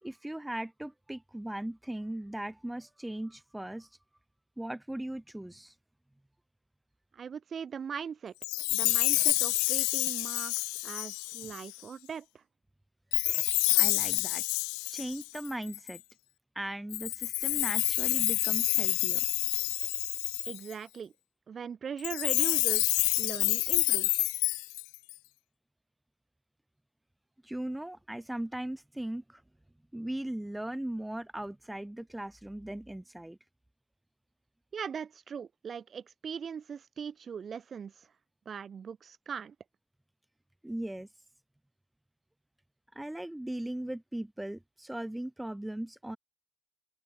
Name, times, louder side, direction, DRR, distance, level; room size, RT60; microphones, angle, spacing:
voice 1, 0.0-3.9 4.6-5.7 13.7-14.4 14.9-16.0 16.5-19.2 27.4-29.4 29.9-33.4 40.6-41.1 42.9-46.2, right 1 dB, 5° right, 3.3 m, -38 dB
voice 2, 7.1-8.3 8.7-12.4 20.4-21.1 21.5-24.3 34.7-38.1 38.4-39.5, right 7 dB, 30° right, 1.7 m, -40 dB
Chime, 8.4-11.8 13.1-16.0 16.9-20.7 22.0-25.1, left 34 dB, 75° left, 0.7 m, -28 dB
supercardioid pair, 115°, 0 cm